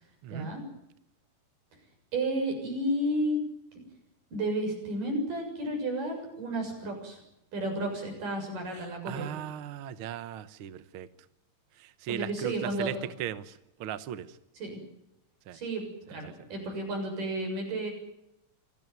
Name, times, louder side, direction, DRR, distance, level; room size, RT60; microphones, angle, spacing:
voice 1, 0.3-0.6 2.1-3.4 4.3-7.2 7.5-9.3 12.1-13.0 14.6-14.8 15.5-17.9, right 1 dB, 85° right, 3 dB, 8.7 m, -32 dB
voice 2, 9.1-11.1 11.8-13.5 13.8-14.3 15.5-15.6 16.1-16.2, right 10 dB, 65° right, 13 dB, 1.3 m, -37 dB
26.5 x 17.5 x 9.5 m, 0.83 s
omnidirectional pair, 3.7 m